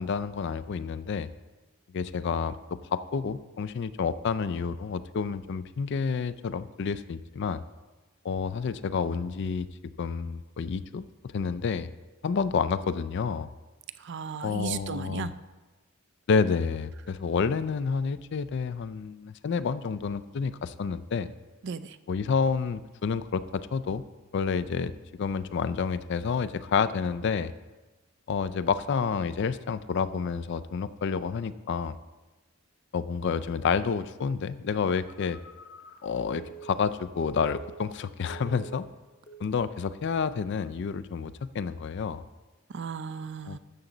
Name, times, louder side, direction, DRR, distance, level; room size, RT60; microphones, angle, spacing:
voice 1, 0.0-1.3 1.9-7.6 8.2-9.7 10.0-11.1 11.3-11.9 12.2-13.5 14.4-15.3 16.3-21.3 22.1-24.0 24.3-24.9 25.2-27.5 28.3-32.0 32.9-35.4 36.0-38.9 39.4-42.2 43.5-43.6, left 5 dB, 55° left, 15 dB, 0.4 m, -29 dB
voice 2, 14.0-15.3 21.6-22.0 42.7-43.6, right 5 dB, 55° right, 13 dB, 0.4 m, -35 dB
Telephone, 35.1-38.0 38.2-38.9 39.3-39.6, right 5 dB, 35° left, 0.8 m, -47 dB
12.5 x 7.1 x 3.9 m, 1.2 s
head